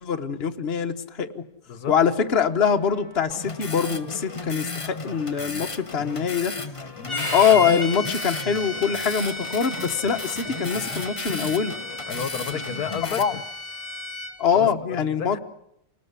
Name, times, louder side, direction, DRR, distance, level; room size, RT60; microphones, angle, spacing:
voice 1, 0.0-1.4 1.9-6.5 7.3-11.7 12.5-12.6 13.0-13.3 14.4-15.4, left 7 dB, 45° left, 6 dB, 1.4 m, -23 dB
Trumpet, 1.8-14.3, equal, 60° right, 5.7 m, -53 dB
sound 1, 3.3-13.2, left 3 dB, 25° left, 1.1 m, -35 dB
voice 2, 7.0-7.3 12.1-13.4 14.5-15.4, left 7 dB, 90° left, 13 dB, 1.7 m, -32 dB
Bowed string instrument, 7.1-14.3, left 1 dB, 15° right, 3.7 m, -34 dB
28.5 x 19.5 x 8.3 m, 0.79 s
omnidirectional pair, 1.6 m